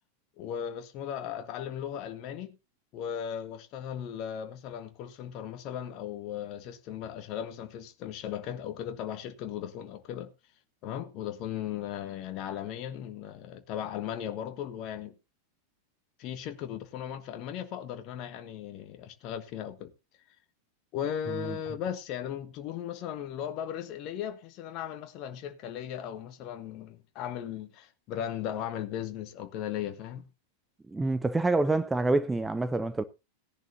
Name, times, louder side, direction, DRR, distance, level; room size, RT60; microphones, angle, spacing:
voice 1, 0.4-2.6 2.9-10.3 10.8-15.1 16.2-19.9 20.9-30.2, left 9 dB, 40° left, 1.3 m, -37 dB
voice 2, 30.9-33.0, right 2 dB, 10° right, 0.6 m, -27 dB
17.0 x 10.5 x 2.7 m
figure-of-eight pair, 90°, 0 cm